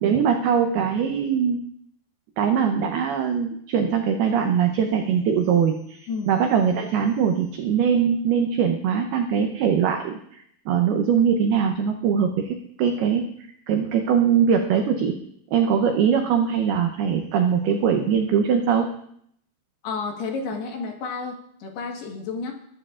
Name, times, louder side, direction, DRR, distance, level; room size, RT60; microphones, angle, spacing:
voice 1, 0.0-1.6 2.4-10.2 10.7-13.3 13.7-15.2 15.5-18.9, right 7 dB, 90° right, 4 dB, 2.2 m, -21 dB
voice 2, 19.8-22.5, left 4 dB, 65° left, 1 dB, 3.1 m, -31 dB
22.0 x 12.0 x 2.5 m, 0.69 s
omnidirectional pair, 5.7 m